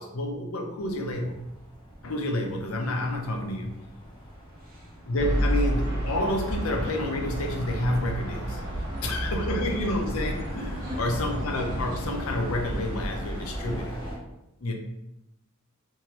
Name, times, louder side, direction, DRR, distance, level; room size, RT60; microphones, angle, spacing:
voice 1, 0.0-1.4 2.0-3.8 5.1-8.6 9.0-14.0 14.6-14.7, left 1 dB, 90° left, 2 dB, 0.6 m, -29 dB
sound 1, 0.8-14.2, equal, 20° left, 0.8 m, -42 dB
voice 2, 4.6-4.9 8.9-9.6 10.8-11.0, left 1 dB, 45° right, -2 dB, 0.8 m, -44 dB
sound 2, 5.2-13.8, equal, 80° right, 1.0 m, -31 dB
2.7 x 2.7 x 3.0 m, 0.89 s
head